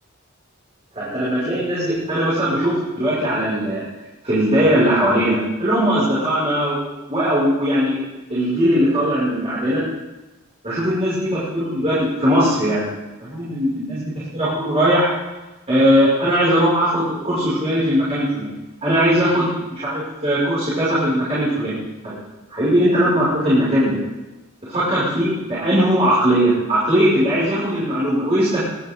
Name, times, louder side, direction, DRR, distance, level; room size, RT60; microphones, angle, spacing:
voice 1, 0.9-3.8 4.2-6.8 7.1-8.0 8.3-9.8 10.6-12.9 13.2-15.1 15.7-18.5 18.8-21.7 22.5-24.0 24.7-28.6, equal, 30° right, -10 dB, 6.3 m, -19 dB
23.5 x 12.5 x 3.9 m, 1.1 s
head